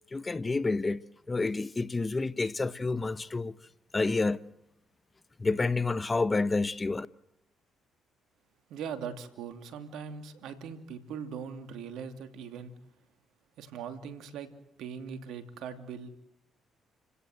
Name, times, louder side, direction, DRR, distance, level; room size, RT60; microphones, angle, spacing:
voice 1, 0.1-1.0 1.3-3.5 3.9-4.4 5.4-7.1, left 3 dB, 25° left, 1.0 m, -29 dB
voice 2, 8.7-12.7 13.6-14.5 14.8-16.1, right 7 dB, 75° right, 2.8 m, -40 dB
30.0 x 17.0 x 7.9 m
supercardioid pair, 65°, 0 cm